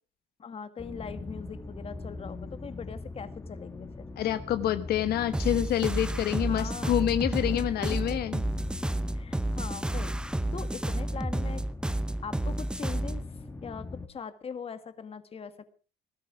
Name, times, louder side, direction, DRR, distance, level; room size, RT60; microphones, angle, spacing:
voice 1, 0.4-4.1 6.5-7.0 7.5-8.3 9.2-11.6 12.2-15.7, left 6 dB, 35° left, 11 dB, 1.7 m, -41 dB
sound 1, 0.8-14.1, left 3 dB, 15° left, 2.4 m, -41 dB
voice 2, 4.2-8.4, left 11 dB, 70° left, 11 dB, 1.2 m, -27 dB
sound 2, 5.3-13.2, right 1 dB, 5° right, 0.7 m, -31 dB
19.5 x 12.5 x 4.8 m, 0.36 s
cardioid pair, 110°, 17 cm